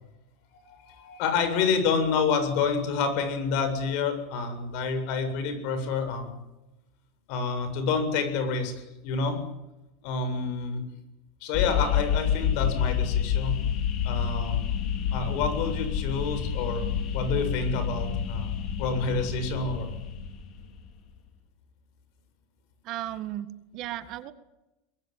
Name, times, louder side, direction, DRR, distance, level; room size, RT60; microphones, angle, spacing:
voice 1, 0.5-6.3 7.3-9.4 10.0-10.8 11.4-13.6 14.0-14.6 15.1-16.8 17.1-18.5 18.8-19.9, left 5 dB, 50° left, 9 dB, 7.6 m, -28 dB
sound 1, 11.5-20.8, left 8 dB, 35° left, 4.0 m, -28 dB
voice 2, 22.8-24.3, right 13 dB, 40° right, 12 dB, 1.7 m, -35 dB
24.0 x 22.0 x 9.4 m, 0.96 s
supercardioid pair, 160°, 0 cm